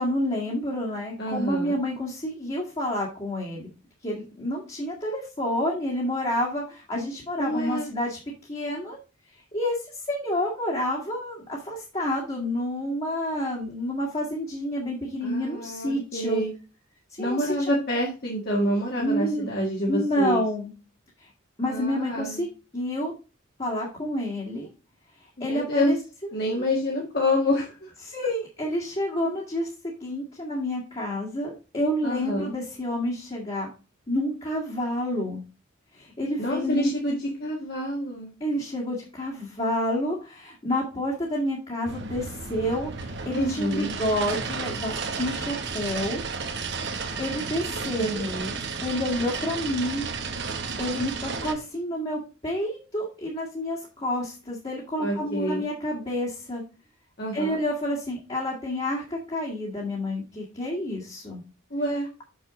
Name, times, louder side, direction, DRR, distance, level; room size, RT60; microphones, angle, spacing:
voice 1, 0.0-3.7 4.0-9.0 9.5-16.4 17.1-17.7 19.0-19.5 19.9-20.7 21.2-21.3 21.6-22.5 22.7-23.1 23.6-24.7 25.4-26.0 28.0-29.7 30.0-33.7 34.1-35.4 35.9-36.9 38.4-46.2 46.9-48.1 48.8-50.1 50.8-56.6 57.3-61.4, left 1 dB, 25° left, -4 dB, 1.9 m, -29 dB
voice 2, 1.2-1.7 7.4-7.9 15.2-16.5 17.2-20.4 21.6-22.4 25.4-25.9 26.3-27.9 32.0-32.5 36.4-38.3 43.3-43.9 48.0-48.6 55.0-55.7 57.2-57.6 61.7-62.1, equal, 45° left, -2 dB, 1.8 m, -27 dB
sound 1, 41.9-51.5, right 4 dB, 55° right, 1.2 m, -33 dB
6.6 x 6.4 x 3.7 m, 0.32 s
head